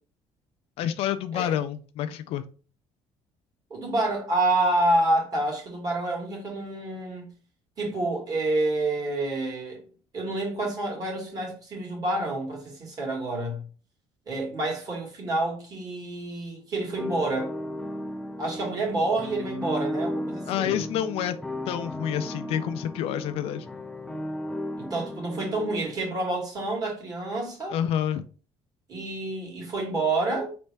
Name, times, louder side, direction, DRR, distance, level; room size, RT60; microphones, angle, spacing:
voice 1, 0.8-2.4 20.5-21.4 21.7-23.7 27.7-28.3, left 10 dB, 65° left, 0.4 m, -28 dB
voice 2, 3.7-7.3 7.8-9.8 10.1-13.6 14.3-17.5 18.4-20.7 24.8-27.8 28.9-30.5, right 2 dB, 35° right, 1.8 m, -28 dB
sound 1, 17.0-25.9, left 1 dB, 5° left, 0.4 m, -35 dB
4.1 x 3.3 x 3.3 m
cardioid pair, 145°, 11 cm